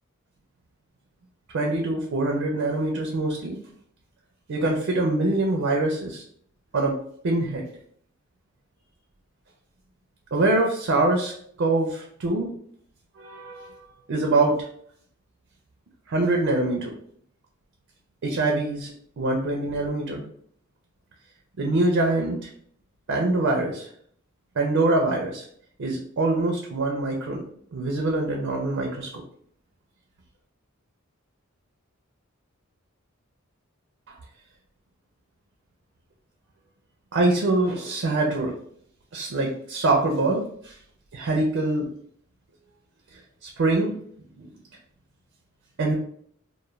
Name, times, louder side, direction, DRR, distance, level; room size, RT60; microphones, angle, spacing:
voice 1, 1.5-3.6 4.5-6.2 6.7-7.0 7.2-7.7 10.3-11.3 11.6-12.5 13.2-13.8 14.1-14.7 16.1-16.9 18.2-18.9 19.2-20.2 21.6-22.5 23.1-23.9 24.6-25.5 25.8-27.4 27.7-29.2 37.1-38.5 39.1-40.8 41.1-41.9 43.1-43.9 44.4-44.5 45.8-45.9, right 2 dB, 60° right, 0 dB, 0.4 m, -24 dB
2.3 x 2.1 x 3.0 m, 0.64 s
head